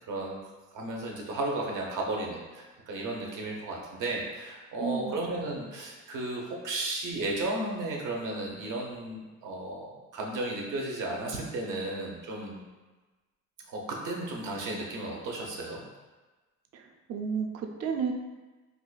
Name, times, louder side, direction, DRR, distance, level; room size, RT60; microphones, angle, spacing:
voice 1, 0.1-0.4 0.7-9.9 10.1-12.6 13.7-15.8, right 2 dB, 80° right, -1 dB, 0.8 m, -34 dB
voice 2, 4.8-5.5 16.7-18.1, right 6 dB, 55° right, 3 dB, 0.5 m, -33 dB
4.7 x 2.4 x 2.2 m, 1.2 s
cardioid pair, 90°, 30 cm